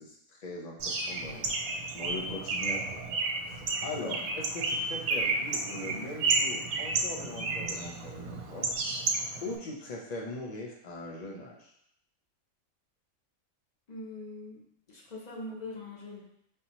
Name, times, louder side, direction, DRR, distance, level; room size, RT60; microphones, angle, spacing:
voice 1, 0.0-3.0 3.5-8.7 9.4-11.7, left 2 dB, 80° left, -2 dB, 0.3 m, -41 dB
Bird, 0.8-9.6, right 3 dB, 75° right, 1.0 m, -32 dB
voice 2, 13.9-16.2, left 2 dB, 35° left, -2 dB, 0.8 m, -42 dB
5.3 x 2.8 x 2.9 m, 0.74 s
omnidirectional pair, 1.5 m